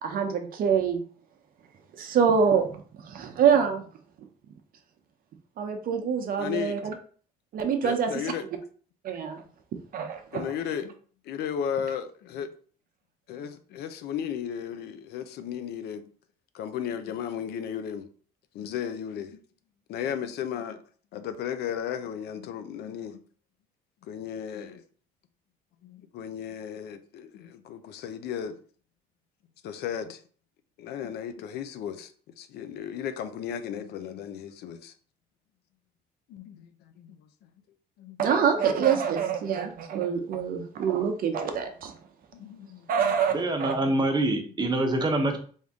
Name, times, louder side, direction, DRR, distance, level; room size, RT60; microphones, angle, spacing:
voice 1, 0.0-1.0 2.0-3.8 5.6-6.9 7.5-8.1 9.0-9.4 9.9-10.4 38.2-41.9 42.9-43.7, right 7 dB, 60° right, 0.7 m, -25 dB
voice 2, 6.4-6.8 7.8-8.5 10.3-10.9 11.3-12.5 13.3-16.0 16.5-18.1 18.5-19.4 19.9-20.8 21.1-23.2 24.0-24.8 25.8-28.6 29.6-30.2 30.8-32.1 32.4-34.9 36.3-36.7 37.0-37.2 38.0-38.3 42.3-43.4, left 8 dB, 75° left, 0.5 m, -35 dB
voice 3, 43.3-45.4, right 2 dB, 25° right, 0.9 m, -25 dB
3.5 x 2.7 x 3.5 m
cardioid pair, 110°, 17 cm